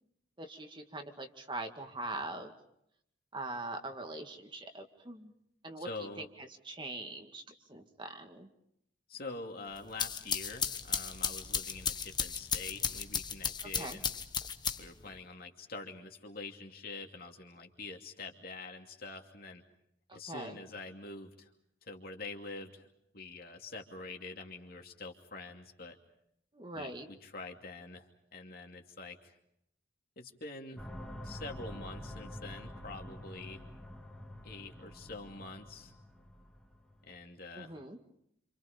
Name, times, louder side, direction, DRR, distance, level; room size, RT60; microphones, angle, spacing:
voice 1, 0.4-2.5 3.3-5.3 5.6-5.9 6.2-7.4 7.7-8.5 13.8-14.0 20.1-20.6 26.5-27.1 37.6-38.0, right 2 dB, 25° right, 5 dB, 2.0 m, -42 dB
voice 2, 5.8-6.3 9.1-14.1 14.8-19.6 20.1-21.5 21.8-22.9 23.1-26.0 26.7-28.1 28.3-29.3 30.2-30.8 31.2-33.6 34.4-35.9 37.0-37.7, left 3 dB, 55° left, 3 dB, 2.7 m, -45 dB
sound 1, 9.8-15.1, left 7 dB, 25° left, 1.1 m, -35 dB
sound 2, 30.8-37.1, equal, 5° left, 2.1 m, -47 dB
28.5 x 27.5 x 5.2 m, 0.75 s
head